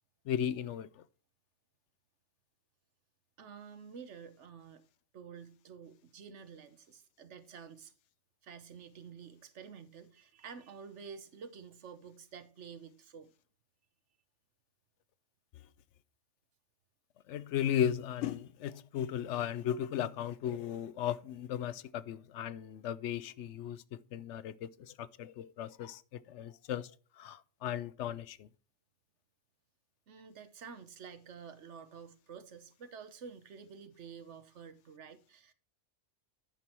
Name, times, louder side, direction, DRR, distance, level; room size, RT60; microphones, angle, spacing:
voice 1, 0.3-1.0 17.3-26.9 27.2-28.5, left 10 dB, 75° left, 0.9 m, -36 dB
voice 2, 3.4-4.8 5.1-7.9 8.4-13.3 30.1-35.5, right 6 dB, 70° right, 1.2 m, -50 dB
10.5 x 6.2 x 4.3 m
omnidirectional pair, 1.3 m